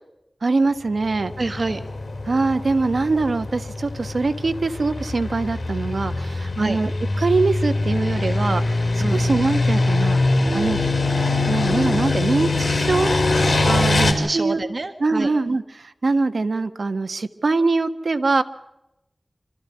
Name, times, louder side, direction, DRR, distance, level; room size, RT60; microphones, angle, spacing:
voice 1, 0.4-1.3 2.2-10.2 10.5-10.8 11.5-13.2 14.3-14.6 15.0-18.4, right 3 dB, 85° right, 9 dB, 1.4 m, -23 dB
sound 1, 1.2-14.1, left 2 dB, 85° left, 4.3 m, -22 dB
voice 2, 1.4-1.8 6.6-6.8 9.0-9.2 13.6-15.3, right 2 dB, 65° right, 7 dB, 1.5 m, -26 dB
27.5 x 14.0 x 9.7 m, 0.90 s
wide cardioid pair, 55°, 0 cm